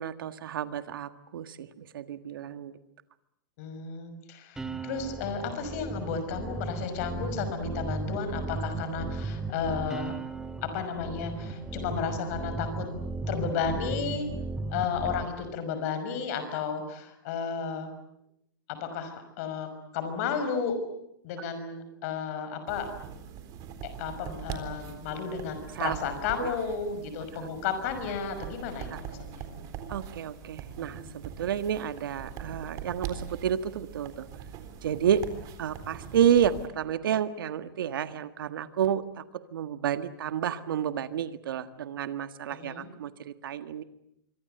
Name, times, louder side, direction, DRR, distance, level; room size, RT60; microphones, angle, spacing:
voice 1, 0.0-2.7 25.7-26.0 26.4-26.5 27.4-27.5 28.9-29.0 29.9-34.3 34.8-35.2 35.6-43.8, right 9 dB, 80° right, 11 dB, 1.7 m, -30 dB
voice 2, 3.6-10.2 10.6-12.9 13.3-14.3 14.7-18.0 18.7-20.8 21.2-23.0 24.0-29.1 29.3-29.4 42.5-42.9, left 6 dB, 45° left, 9 dB, 5.9 m, -33 dB
sound 1, 4.6-15.2, right 3 dB, 5° right, 1.9 m, -35 dB
sound 2, 22.7-36.7, right 8 dB, 30° right, 3.7 m, -42 dB
26.5 x 24.5 x 7.9 m, 0.77 s
supercardioid pair, 155°, 11 cm